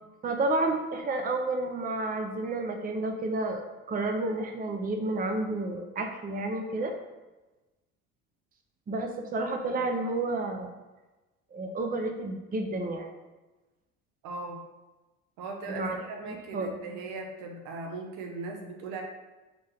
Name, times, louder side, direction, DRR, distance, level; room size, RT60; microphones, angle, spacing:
voice 1, 0.2-6.9 8.9-10.7 11.5-13.1 15.7-16.8, right 2 dB, 25° right, 4 dB, 0.6 m, -31 dB
voice 2, 14.2-14.6 15.4-19.0, right 3 dB, 75° right, 2 dB, 1.0 m, -38 dB
4.1 x 3.6 x 3.4 m, 1.1 s
supercardioid pair, 75°, 33 cm